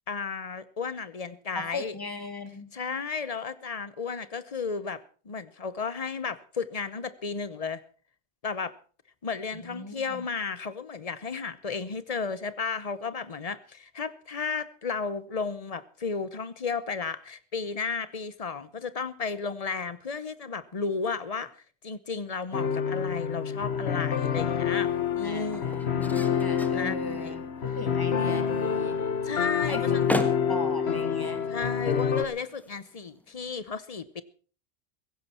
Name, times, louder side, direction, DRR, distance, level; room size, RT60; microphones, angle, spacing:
voice 1, 0.1-1.9 2.7-7.8 8.4-8.7 9.2-21.5 21.8-25.9 26.7-27.4 29.2-30.1 31.5-34.2, left 5 dB, 35° left, 15 dB, 0.9 m, -33 dB
voice 2, 1.6-2.7 9.6-10.2 25.2-29.0 29.7-30.0 30.5-31.4, left 2 dB, 20° left, 8 dB, 2.1 m, -38 dB
sound 1, 22.5-32.2, left 7 dB, 70° left, 1.5 m, -27 dB
sound 2, 23.2-33.5, equal, ahead, 1.3 m, -40 dB
16.5 x 15.5 x 4.3 m, 0.41 s
omnidirectional pair, 1.1 m